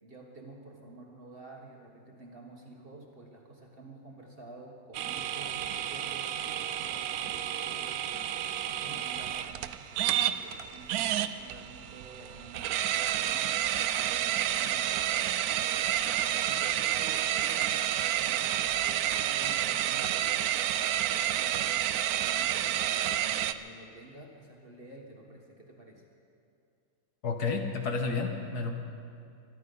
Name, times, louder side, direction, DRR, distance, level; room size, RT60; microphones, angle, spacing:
voice 1, 0.0-13.6 13.9-20.9 21.2-26.0, right 2 dB, 30° right, 0 dB, 1.6 m, -50 dB
sound 1, 4.9-23.5, right 11 dB, 75° right, 0.8 m, -30 dB
voice 2, 27.2-28.7, left 4 dB, 60° left, 4 dB, 1.6 m, -31 dB
23.0 x 11.5 x 5.4 m, 2.4 s
omnidirectional pair, 2.0 m